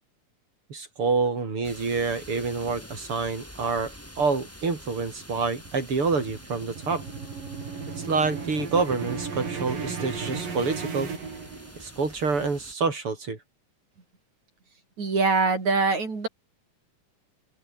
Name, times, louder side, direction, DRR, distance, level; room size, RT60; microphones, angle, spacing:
voice 1, 0.7-7.0 8.0-11.1 11.8-13.4, right 4 dB, 40° right, 5.7 m, -27 dB
sound 1, 1.6-12.7, equal, 5° left, 5.9 m, -47 dB
sound 2, 5.2-12.0, right 5 dB, 80° right, 6.6 m, -35 dB
voice 2, 15.0-16.3, right 4 dB, 55° right, 7.1 m, -23 dB
open air
omnidirectional pair, 3.8 m